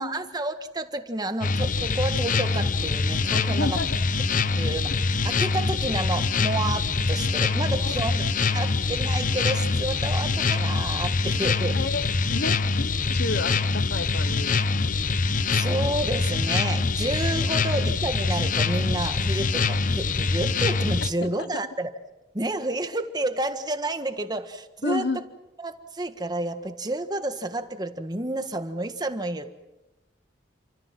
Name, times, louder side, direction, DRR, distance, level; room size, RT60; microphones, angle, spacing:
voice 1, 0.0-3.8 4.6-8.3 8.5-11.8 15.5-21.9 22.3-25.2 25.6-29.6, right 2 dB, 25° right, 8 dB, 1.6 m, -30 dB
sound 1, 1.4-21.1, left 4 dB, 50° left, 0.8 m, -24 dB
voice 2, 3.5-4.0 7.8-8.2 11.7-15.0 17.5-17.7 21.2-21.7 24.8-25.2, left 3 dB, 65° left, 13 dB, 1.1 m, -32 dB
29.0 x 25.0 x 6.1 m, 0.99 s
head